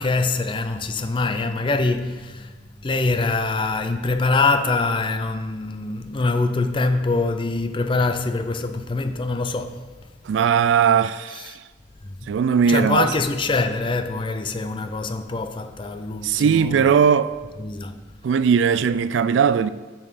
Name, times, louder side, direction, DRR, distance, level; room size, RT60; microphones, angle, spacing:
voice 1, 0.0-2.5 2.8-9.8 12.2-12.3 12.7-16.6 17.6-18.0, left 3 dB, 25° left, 0.4 m, -24 dB
voice 2, 10.2-11.6 12.3-13.2 16.2-17.4 18.2-19.7, right 7 dB, 80° right, 0.3 m, -19 dB
7.2 x 5.3 x 5.8 m
head